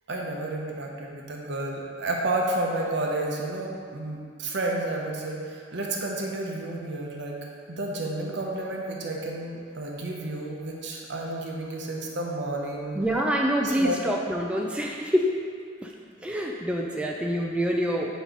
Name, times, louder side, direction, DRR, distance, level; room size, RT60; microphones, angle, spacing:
voice 1, 0.1-7.4 7.7-13.0 13.6-14.0, right 2 dB, 65° right, -1 dB, 0.8 m, -31 dB
voice 2, 12.9-15.3 15.8-15.9 16.2-18.1, equal, 5° right, -1 dB, 0.3 m, -26 dB
4.6 x 4.1 x 5.1 m, 2.2 s
head